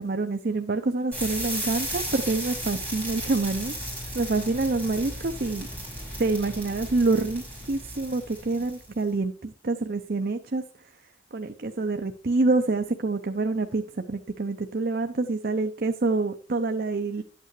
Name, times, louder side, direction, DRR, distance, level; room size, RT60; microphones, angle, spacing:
voice 1, 0.0-5.7 6.2-10.6 11.3-17.2, right 3 dB, 50° right, 7 dB, 0.6 m, -27 dB
sound 1, 1.1-9.0, right 1 dB, 10° left, 6.1 m, -35 dB
12.0 x 8.8 x 3.2 m, 0.38 s
head